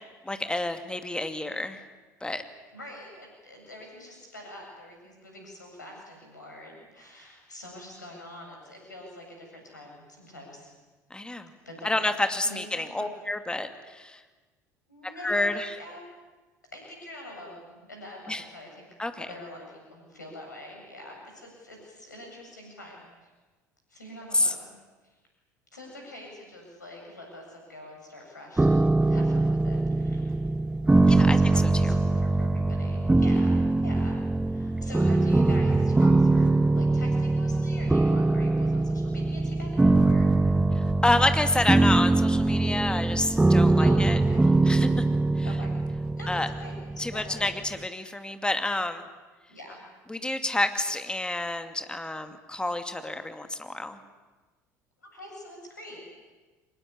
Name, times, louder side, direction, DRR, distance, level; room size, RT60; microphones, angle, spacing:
voice 1, 0.3-1.8 2.2-2.4 11.1-11.5 11.8-14.2 15.2-15.8 18.3-18.4 19.0-19.3 24.3-24.5 31.1-31.4 31.8-32.0 40.8-44.2 44.6-45.0 45.4-45.5 46.3-46.5 47.0-49.1 50.1-54.0, left 2 dB, 10° left, 8 dB, 2.4 m, -29 dB
voice 2, 2.7-10.7 11.6-12.1 12.4-13.1 14.9-16.0 16.7-18.9 19.2-23.3 23.9-24.7 25.7-30.3 31.1-40.5 43.8-44.4 45.4-45.7 46.2-47.5 49.5-49.8 55.1-56.0, left 1 dB, 85° left, 1 dB, 8.0 m, -45 dB
sound 1, 28.6-47.5, right 2 dB, 10° right, 0.7 m, -22 dB
24.5 x 20.5 x 10.0 m, 1.3 s
figure-of-eight pair, 65°, 9 cm